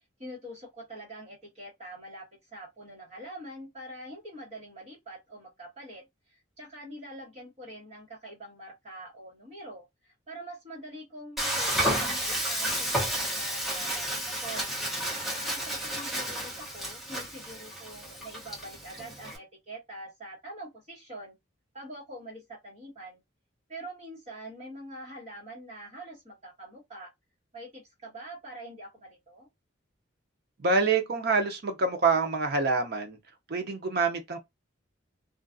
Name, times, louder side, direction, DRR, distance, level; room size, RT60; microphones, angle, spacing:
voice 1, 0.2-14.7 15.1-21.3 21.7-23.2 23.7-27.1 27.5-29.5, right 1 dB, 30° right, 1.4 m, -44 dB
Frying (food), 11.4-19.4, right 1 dB, ahead, 0.7 m, -31 dB
voice 2, 30.6-33.2 33.5-34.4, right 4 dB, 50° right, 0.6 m, -26 dB
2.5 x 2.3 x 2.5 m
head